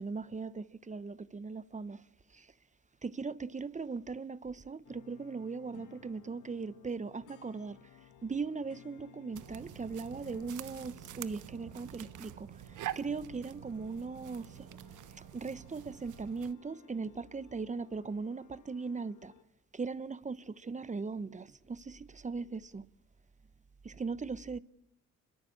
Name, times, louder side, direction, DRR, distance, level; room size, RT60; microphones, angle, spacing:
voice 1, 0.0-2.0 2.3-2.5 3.0-7.8 8.2-14.8 15.2-19.3 19.7-22.9 23.8-24.6, right 4 dB, 25° right, 1.0 m, -39 dB
sound 1, 4.8-19.4, left 11 dB, 90° left, 2.4 m, -60 dB
sound 2, 9.3-16.5, right 12 dB, 80° right, 1.2 m, -46 dB
26.0 x 22.0 x 8.6 m
cardioid pair, 90°, 30 cm